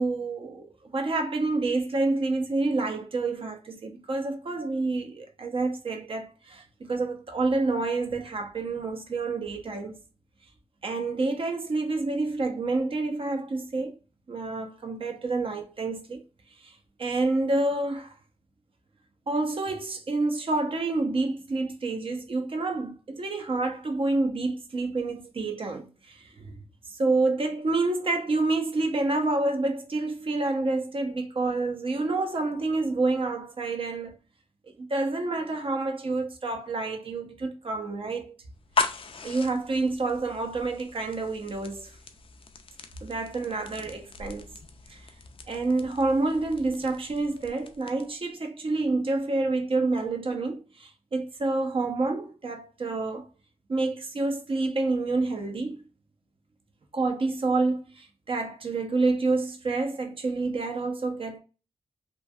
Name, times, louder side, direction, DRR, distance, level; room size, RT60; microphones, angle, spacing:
voice 1, 0.0-10.0 10.8-14.0 14.3-16.2 16.6-18.1 19.3-26.6 26.9-34.2 34.8-38.3 39.2-42.0 43.0-44.5 44.9-45.1 45.5-53.3 53.7-55.8 56.9-61.4, right 3 dB, 50° right, 0.7 m, -28 dB
sound 1, 38.5-48.3, left 5 dB, 50° left, 0.4 m, -37 dB
3.1 x 2.2 x 2.4 m
cardioid pair, 75°, 12 cm